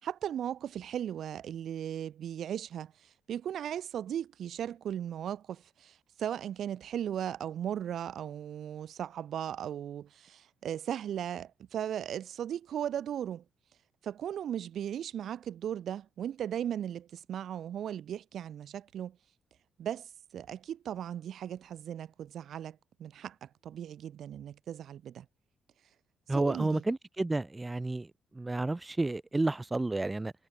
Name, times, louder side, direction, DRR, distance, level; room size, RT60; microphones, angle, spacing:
voice 1, 0.0-2.9 3.3-13.4 14.0-19.2 19.8-20.1 20.3-25.3 26.3-26.8, right 10 dB, 65° right, 5.6 m, -37 dB
voice 2, 26.3-28.1 28.3-30.3, right 2 dB, 15° right, 3.8 m, -31 dB
cardioid pair, 90°, 0 cm